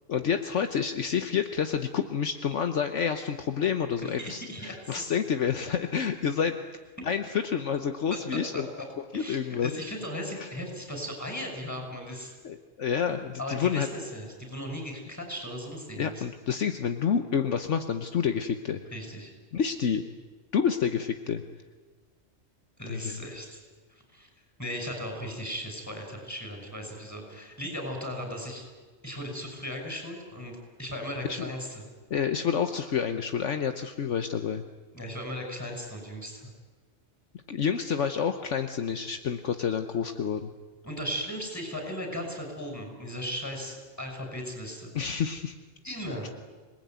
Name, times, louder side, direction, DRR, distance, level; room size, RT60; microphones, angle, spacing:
voice 1, 0.1-6.5 7.0-8.7 9.1-9.7 10.4-10.5 12.4-13.9 16.0-18.8 19.5-20.0 20.5-21.4 22.9-23.2 31.3-31.4 32.1-34.6 37.5-40.5 44.9-45.5, left 7 dB, 65° left, 7 dB, 1.3 m, -28 dB
voice 2, 3.9-5.1 8.1-8.2 8.5-8.6 9.1-12.3 13.4-16.2 18.9-19.3 22.8-23.6 23.9-24.3 24.6-28.6 29.0-31.8 34.9-36.5 40.8-44.9 45.8-46.3, equal, 10° left, 3 dB, 6.6 m, -37 dB
27.0 x 19.5 x 9.4 m, 1.4 s
omnidirectional pair, 1.3 m